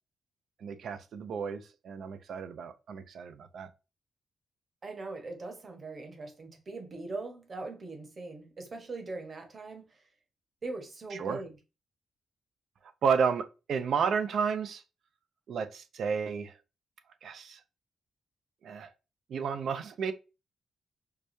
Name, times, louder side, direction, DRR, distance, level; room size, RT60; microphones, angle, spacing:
voice 1, 0.6-3.7 11.1-11.4 13.0-14.8 15.5-16.5 17.2-17.6 18.6-18.9 19.3-20.1, right 6 dB, 65° right, 0.4 m, -32 dB
voice 2, 4.8-9.9 10.6-11.6, right 3 dB, 35° right, 1.0 m, -41 dB
4.7 x 2.2 x 2.6 m
wide cardioid pair, 140°, 0 cm